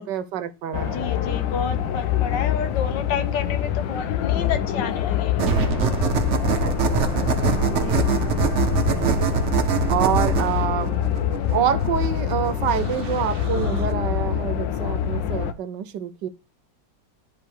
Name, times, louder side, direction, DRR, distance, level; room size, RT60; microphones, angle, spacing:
voice 1, 0.0-1.1 6.6-7.2 8.9-9.3 9.9-11.0 11.5-16.3, right 9 dB, 70° right, 1.3 m, -27 dB
sound 1, 0.7-15.5, left 10 dB, 85° left, 1.4 m, -25 dB
voice 2, 0.8-5.7 7.8-8.0, left 6 dB, 70° left, 1.5 m, -30 dB
sound 2, 5.4-13.9, right 7 dB, 55° right, 0.9 m, -24 dB
10.5 x 3.5 x 4.7 m
omnidirectional pair, 2.0 m